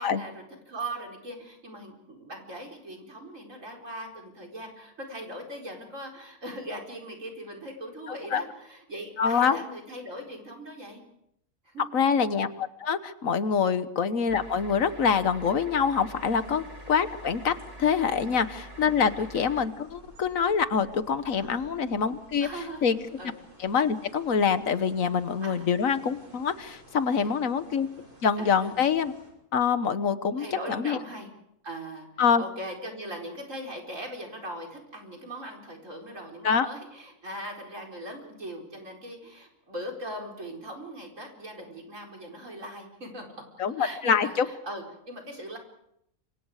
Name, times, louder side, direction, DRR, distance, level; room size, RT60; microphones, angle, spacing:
voice 1, 0.0-11.0 11.6-12.0 16.4-16.6 18.2-18.4 19.0-19.2 21.4-21.9 22.4-22.9 23.2-23.4 25.4-25.7 27.1-27.5 28.4-28.7 30.3-31.3 31.6-43.2 43.7-45.6, right 1 dB, 55° right, 1 dB, 4.9 m, -40 dB
voice 2, 9.2-9.6 11.9-17.5 17.8-22.5 22.8-23.0 23.6-27.9 28.2-29.1 29.5-31.0 32.2-32.4 36.4-36.7 43.6-44.4, left 6 dB, 60° left, 12 dB, 1.5 m, -25 dB
sound 1, 14.3-19.7, right 1 dB, 25° right, 2.6 m, -45 dB
sound 2, 16.1-29.3, right 1 dB, 80° right, 8.3 m, -55 dB
28.5 x 25.5 x 5.0 m, 0.76 s
omnidirectional pair, 1.6 m